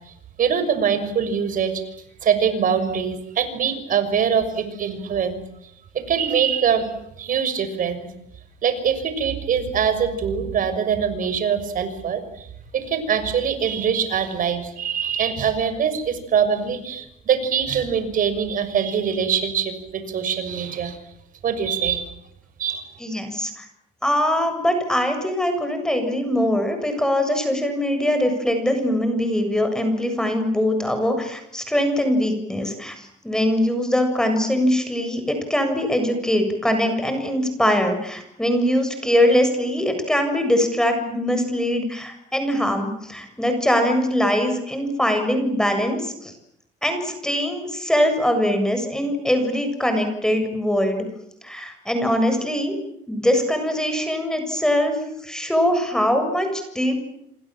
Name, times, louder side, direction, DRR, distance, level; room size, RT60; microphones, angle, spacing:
voice 1, 0.4-1.8 2.2-5.4 5.9-6.9 7.2-8.1 8.6-12.5 12.7-21.0 21.4-22.1 22.6-22.8, right 7 dB, 55° right, 10 dB, 6.2 m, -23 dB
voice 2, 23.0-23.7 24.0-46.3 46.8-51.0 51.4-52.7 53.1-57.0, equal, 5° left, 6 dB, 7.2 m, -22 dB
28.0 x 27.0 x 7.6 m, 0.77 s
cardioid pair, 110°, 17 cm